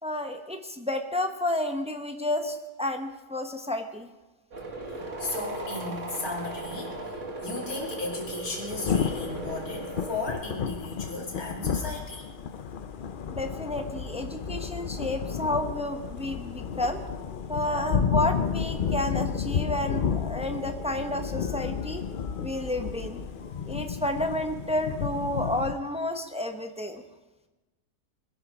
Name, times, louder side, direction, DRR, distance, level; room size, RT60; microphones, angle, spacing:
voice 1, 0.0-4.1 13.3-17.0 17.5-22.0 22.4-23.2 23.7-27.0, left 1 dB, 5° right, 5 dB, 0.6 m, -31 dB
sound 1, 4.5-10.3, right 2 dB, 45° right, 2.2 m, -37 dB
voice 2, 4.9-12.2, left 2 dB, 55° left, -1 dB, 3.2 m, -35 dB
Thunder / Rain, 8.7-25.7, left 7 dB, 75° left, 0.4 m, -32 dB
21.5 x 10.5 x 5.0 m, 1.1 s
omnidirectional pair, 1.8 m